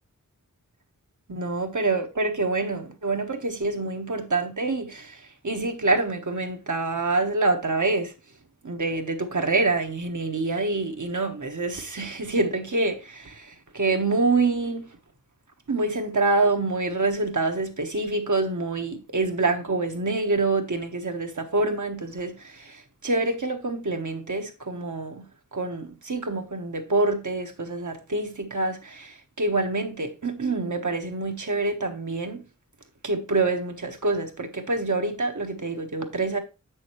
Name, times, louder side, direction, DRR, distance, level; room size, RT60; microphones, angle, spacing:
voice 1, 1.3-8.1 8.6-14.8 15.7-25.2 25.5-32.4 33.0-36.4, right 3 dB, 65° right, 1.2 m, -26 dB
7.6 x 6.2 x 3.0 m
wide cardioid pair, 40°, 33 cm